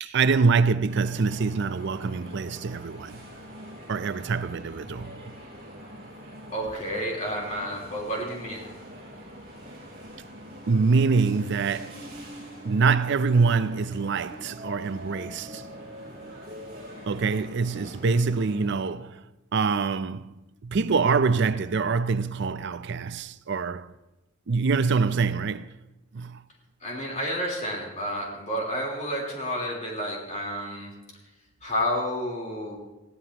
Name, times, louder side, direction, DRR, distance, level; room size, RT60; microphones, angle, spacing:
voice 1, 0.0-3.2 3.9-5.1 10.7-12.0 12.6-15.6 17.1-19.2 19.5-20.3 20.6-23.9 24.5-25.7 26.1-26.4, right 4 dB, 60° right, 0.5 m, -25 dB
sound 1, 0.8-18.9, equal, 35° right, 5.5 m, -43 dB
voice 2, 6.5-8.7 26.8-30.9 31.6-32.8, equal, 40° left, 3.8 m, -30 dB
20.5 x 15.0 x 2.9 m
head